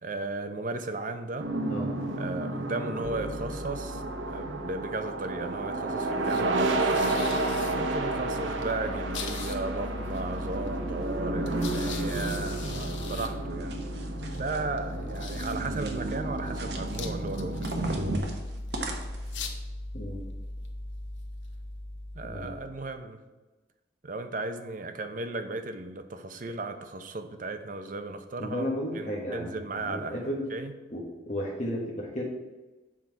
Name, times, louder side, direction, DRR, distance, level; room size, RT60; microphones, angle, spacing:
voice 1, 0.0-1.5 2.2-4.0 4.3-7.2 7.7-13.8 14.3-18.0 22.1-23.2 24.0-28.7 28.9-30.7, right 2 dB, 45° right, 8 dB, 0.6 m, -35 dB
sound 1, 1.4-18.2, right 2 dB, 90° right, 0.9 m, -32 dB
sound 2, 3.0-22.9, left 2 dB, 80° left, 1.0 m, -39 dB
sound 3, 12.3-13.0 13.5-14.6 15.3-16.2 16.5-17.1 17.6-19.4, right 2 dB, 60° right, 1.1 m, -41 dB
voice 2, 28.4-30.4 30.9-32.2, equal, 40° left, -3 dB, 1.2 m, -33 dB
7.4 x 5.8 x 4.6 m, 1.2 s
head